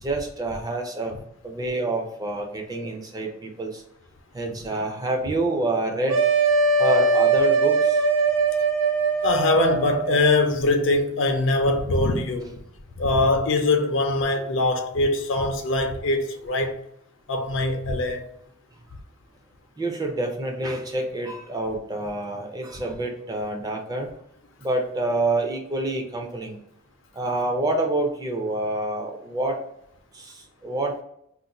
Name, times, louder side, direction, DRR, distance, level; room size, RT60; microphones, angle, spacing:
voice 1, 0.0-1.1 1.4-3.8 4.3-6.2 6.8-8.1 19.8-24.1 24.6-26.6 27.1-29.6 30.1-31.0, right 2 dB, 20° right, 0.4 m, -27 dB
sound 1, 6.1-10.5, right 3 dB, 75° right, 0.5 m, -21 dB
voice 2, 9.2-12.6 13.0-16.8 17.3-18.3, left 2 dB, 65° left, 0.5 m, -22 dB
2.5 x 2.1 x 3.9 m
head